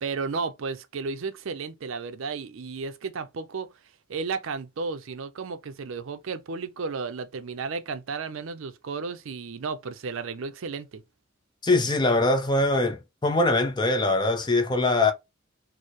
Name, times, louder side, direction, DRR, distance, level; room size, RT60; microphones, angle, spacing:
voice 1, 0.0-3.7 4.1-11.0, right 4 dB, 65° right, 0.5 m, -33 dB
voice 2, 11.6-15.1, left 2 dB, 20° left, 0.5 m, -22 dB
4.4 x 2.1 x 3.0 m
head